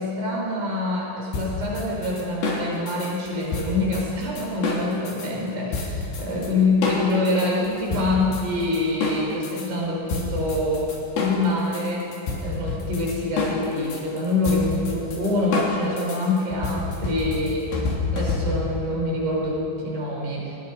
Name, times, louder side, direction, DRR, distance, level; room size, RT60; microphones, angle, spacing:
voice 1, 0.0-10.9 11.2-12.1 12.4-17.7 18.1-20.6, left 2 dB, 40° right, -2 dB, 5.7 m, -25 dB
sound 1, 1.3-5.3 5.7-6.5 6.8-9.7 10.1-18.8, left 3 dB, 65° left, 5.6 m, -28 dB
29.0 x 20.0 x 5.2 m, 2.9 s
omnidirectional pair, 5.7 m